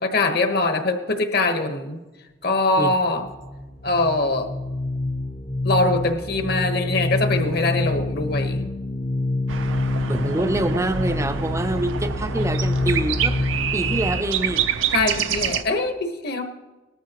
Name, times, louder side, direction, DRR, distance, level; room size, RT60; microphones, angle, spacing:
voice 1, 0.0-2.0 2.4-3.3 3.8-4.5 5.6-8.7 14.9-16.4, left 2 dB, 55° left, 6 dB, 1.2 m, -22 dB
sound 1, 3.0-14.2, left 2 dB, 35° left, 0.6 m, -27 dB
sound 2, 9.5-15.6, right 8 dB, 80° right, 0.6 m, -27 dB
voice 2, 10.1-13.4 13.7-14.7, right 1 dB, 15° right, 10 dB, 0.5 m, -25 dB
18.5 x 13.0 x 3.0 m, 1.1 s
head